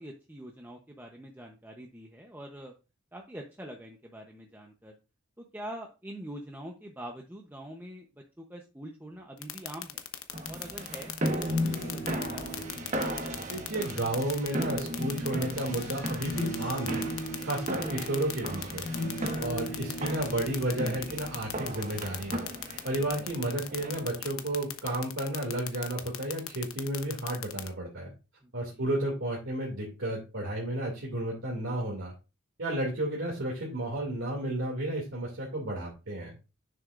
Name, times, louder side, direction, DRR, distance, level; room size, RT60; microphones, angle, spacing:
voice 1, 0.0-2.7 3.1-4.9 5.4-8.1 8.4-10.0 10.5-12.5 12.8-12.9 20.0-20.1 28.4-28.8, right 1 dB, 10° right, 1 dB, 0.8 m, -44 dB
sound 1, 9.4-27.7, left 12 dB, 85° left, 1.0 m, -36 dB
sound 2, 10.3-24.2, right 1 dB, 35° right, 1.5 m, -36 dB
sound 3, 11.5-14.2 14.9-21.9 22.2-22.6, equal, 60° left, 1.5 m, -39 dB
voice 2, 13.5-17.0 17.4-18.9 19.4-22.4 22.8-28.1 28.5-32.1 32.6-36.3, right 1 dB, 70° right, -2 dB, 2.5 m, -32 dB
9.8 x 7.3 x 2.5 m, 0.30 s
head